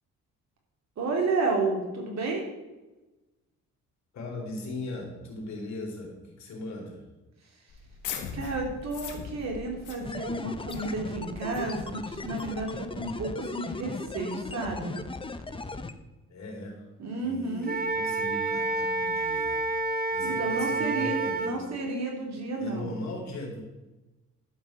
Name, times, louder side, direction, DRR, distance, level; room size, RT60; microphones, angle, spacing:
voice 1, 1.0-2.5 8.3-15.0 17.0-17.8 20.2-22.9, right 3 dB, 60° right, 1 dB, 3.3 m, -31 dB
voice 2, 4.1-7.0 16.3-16.9 17.2-19.6 20.1-21.7 22.3-23.6, left 2 dB, 65° left, -1 dB, 3.7 m, -39 dB
sound 1, 7.7-13.1, left 6 dB, 80° left, 1.6 m, -41 dB
sound 2, 10.0-15.9, left 3 dB, 15° left, 0.8 m, -37 dB
Wind instrument woodwind instrument, 17.6-21.5, right 3 dB, 30° right, 1.3 m, -29 dB
12.0 x 5.6 x 5.8 m, 1.1 s
cardioid pair, 90°, 30 cm